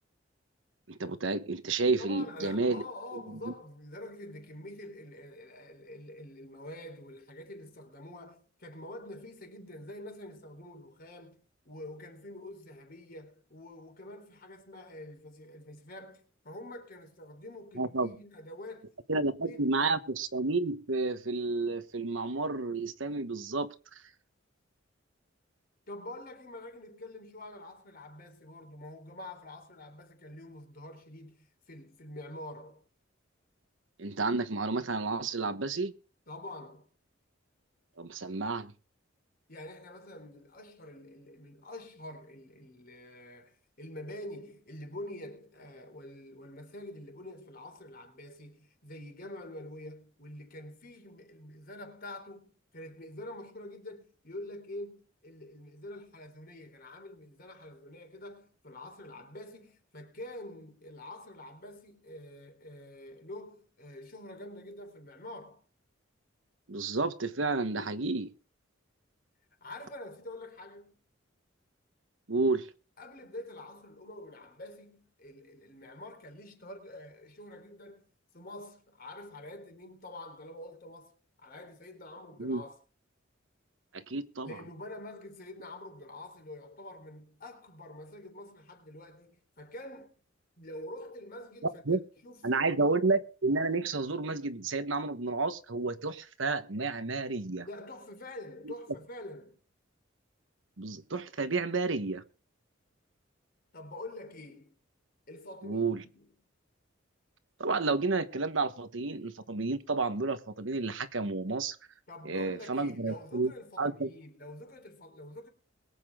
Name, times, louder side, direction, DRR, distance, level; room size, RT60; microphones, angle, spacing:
voice 1, 0.9-2.8 3.3-3.5 17.7-18.1 19.1-24.0 34.0-35.9 38.0-38.7 66.7-68.3 72.3-72.7 82.4-82.6 83.9-84.6 91.9-92.0 92.4-97.7 98.6-98.7 100.8-102.2 105.6-106.0 107.6-111.8 112.2-113.5 113.8-114.1, right 3 dB, 70° right, 1.2 m, -31 dB
voice 2, 2.0-19.9 25.9-32.8 36.3-36.9 39.5-65.6 69.6-71.0 73.0-78.1 78.3-81.1 81.4-82.8 84.4-90.1 90.6-93.0 97.6-99.6 103.7-104.8 105.3-106.3 112.1-115.5, left 1 dB, 50° left, 3.7 m, -46 dB
22.0 x 8.4 x 3.6 m
head